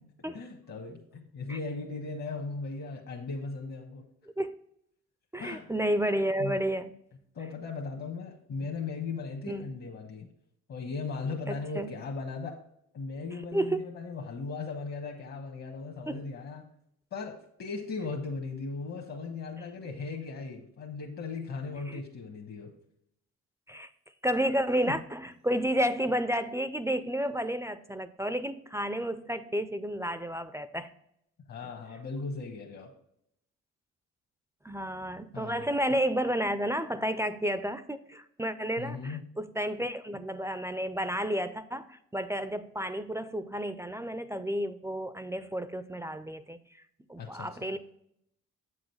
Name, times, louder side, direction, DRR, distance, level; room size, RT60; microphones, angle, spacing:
voice 1, 0.3-4.1 5.4-5.7 6.4-6.6 7.3-10.3 10.7-12.5 12.9-16.7 17.1-22.7 31.5-32.9 35.3-35.7 38.8-39.2 47.2-47.7, left 4 dB, 55° left, 1.3 m, -37 dB
voice 2, 5.3-6.9 9.5-9.7 11.5-11.9 13.5-13.9 16.1-16.3 21.9-22.0 23.7-23.9 24.2-30.9 34.6-46.8 47.1-47.8, equal, 10° right, 0.4 m, -31 dB
7.6 x 6.3 x 3.2 m
cardioid pair, 90°, 30 cm